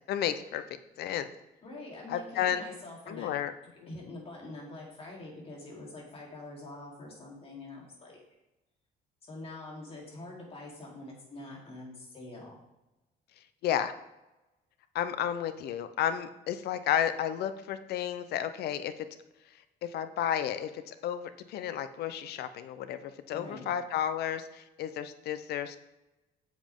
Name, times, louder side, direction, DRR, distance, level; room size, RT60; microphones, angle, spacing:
voice 1, 0.1-1.3 2.1-2.6 3.1-3.5 3.8-3.9 13.6-13.9 14.9-18.9 19.8-25.8, left 10 dB, 70° left, 12 dB, 0.7 m, -32 dB
voice 2, 1.6-3.3 3.9-8.2 9.2-12.6 23.3-23.7, left 2 dB, 35° left, -3 dB, 3.5 m, -45 dB
9.2 x 7.3 x 3.7 m, 0.98 s
cardioid pair, 110°, 17 cm